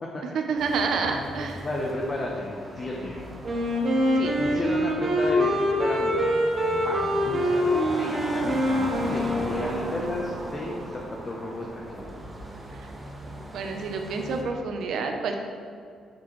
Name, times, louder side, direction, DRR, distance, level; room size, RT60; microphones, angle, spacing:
voice 1, 0.3-1.6 4.2-4.4 13.5-15.4, right 4 dB, 70° right, 4 dB, 0.7 m, -28 dB
sound 1, 0.6-14.4, right 1 dB, 20° right, 1.0 m, -38 dB
voice 2, 1.1-3.4 4.4-6.3 6.8-12.0, left 1 dB, 35° left, -2 dB, 0.8 m, -33 dB
Wind instrument woodwind instrument, 3.4-10.1, equal, 35° right, 1.3 m, -25 dB
6.8 x 6.2 x 3.2 m, 2.3 s
cardioid pair, 90°, 0 cm